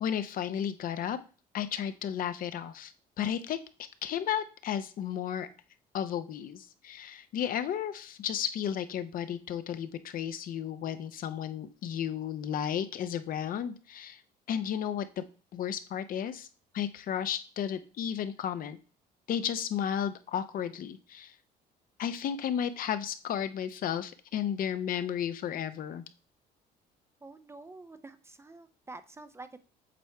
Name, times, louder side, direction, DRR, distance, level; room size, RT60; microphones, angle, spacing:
voice 1, 0.0-1.2 1.5-2.9 3.2-3.6 4.0-5.5 5.9-14.2 14.5-15.3 15.5-16.5 16.7-18.8 19.3-21.3 22.0-26.0, left 9 dB, 55° left, 12 dB, 0.6 m, -33 dB
voice 2, 27.2-29.6, right 3 dB, 15° right, 11 dB, 0.4 m, -48 dB
7.6 x 3.5 x 4.4 m, 0.36 s
cardioid pair, 110°, 17 cm